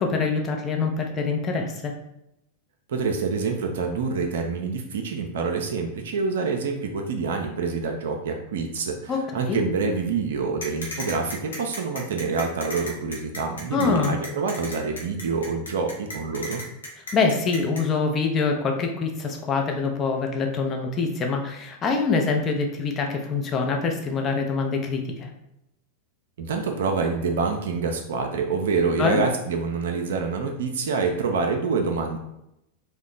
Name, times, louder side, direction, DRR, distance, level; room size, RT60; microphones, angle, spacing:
voice 1, 0.0-1.9 9.1-9.2 9.5-9.6 13.7-14.2 17.1-25.3 29.0-29.2, left 4 dB, 25° left, 2 dB, 0.5 m, -25 dB
voice 2, 2.9-16.6 26.4-32.2, right 4 dB, 60° right, 3 dB, 0.4 m, -26 dB
sound 1, 10.6-17.8, left 1 dB, 70° left, 0.7 m, -35 dB
2.8 x 2.1 x 3.8 m, 0.83 s
figure-of-eight pair, 90°, 0 cm